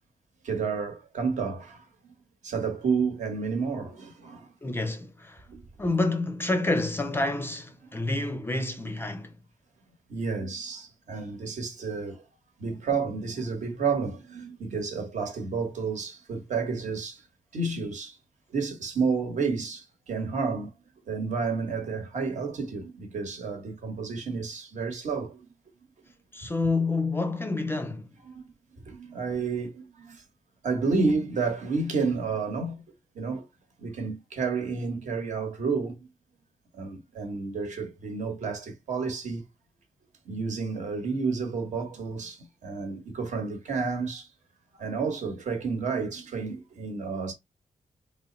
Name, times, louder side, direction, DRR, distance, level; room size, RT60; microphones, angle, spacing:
voice 1, 0.4-1.8 2.4-4.5 5.5-5.6 10.1-12.2 12.6-17.2 17.5-18.2 18.5-20.7 21.1-25.4 28.3-28.4 28.9-30.2 30.6-32.8 33.1-33.5 33.8-36.1 36.7-39.4 40.2-44.3 44.7-47.3, right 4 dB, 65° right, 1.2 m, -30 dB
voice 2, 4.6-5.4 5.8-9.3 26.3-28.1, left 2 dB, 15° left, 0.5 m, -28 dB
3.6 x 2.1 x 3.9 m
wide cardioid pair, 165°, 14 cm